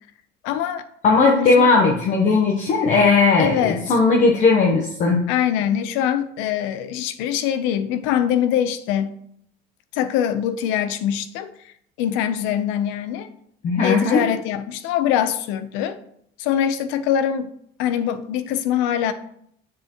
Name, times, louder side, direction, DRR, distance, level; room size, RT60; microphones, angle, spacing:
voice 1, 0.4-0.8 1.3-1.7 3.4-3.9 5.3-9.2 9.9-11.7 12.0-13.3 13.8-16.0 16.4-17.5 17.8-19.1, left 10 dB, 80° left, 0.7 m, -23 dB
voice 2, 1.0-5.2 13.6-14.2, left 4 dB, 40° left, 0.9 m, -17 dB
7.5 x 6.4 x 3.0 m
cardioid pair, 150°, 19 cm